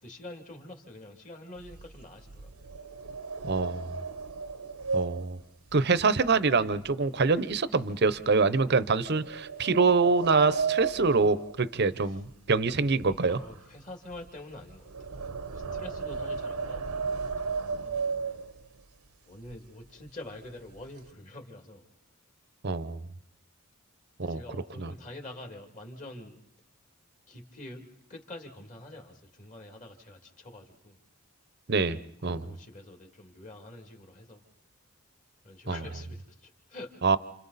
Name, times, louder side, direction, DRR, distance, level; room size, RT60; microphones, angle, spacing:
voice 1, 0.0-2.7 12.1-12.2 13.2-18.4 19.2-21.8 24.2-26.4 27.3-27.8 28.1-31.0 32.0-34.4 35.4-36.9, left 1 dB, 35° left, 4 dB, 2.4 m, -46 dB
sound 1, 1.6-6.9 7.2-7.6 8.1-8.2 9.0-12.3 12.6-18.8 19.4-19.5 19.8-20.1 20.4-21.1, right 5 dB, 80° right, 0.9 m, -35 dB
voice 2, 3.4-3.9 4.9-5.4 5.7-13.4 22.6-23.0 24.2-24.4 24.8-24.9 31.7-32.5 35.7-35.8 37.0-37.2, right 4 dB, 50° right, 15 dB, 0.7 m, -25 dB
29.5 x 27.5 x 4.1 m, 0.78 s
head